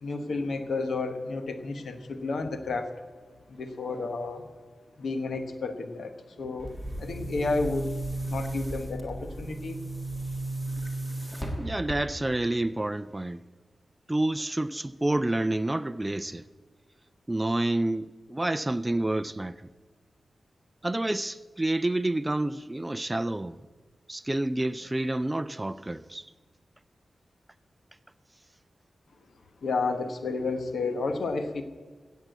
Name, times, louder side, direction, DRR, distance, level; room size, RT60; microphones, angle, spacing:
voice 1, 0.0-2.9 3.5-4.4 5.0-7.9 8.2-9.8 29.6-31.6, left 3 dB, 80° left, 1.2 m, -31 dB
Boom, 6.6-12.4, right 2 dB, 10° left, 1.7 m, -35 dB
voice 2, 11.6-13.4 14.1-16.4 17.3-19.6 20.8-23.6 24.1-26.3, right 1 dB, 15° right, 0.4 m, -29 dB
17.5 x 7.3 x 8.0 m
wide cardioid pair, 130°, 0 cm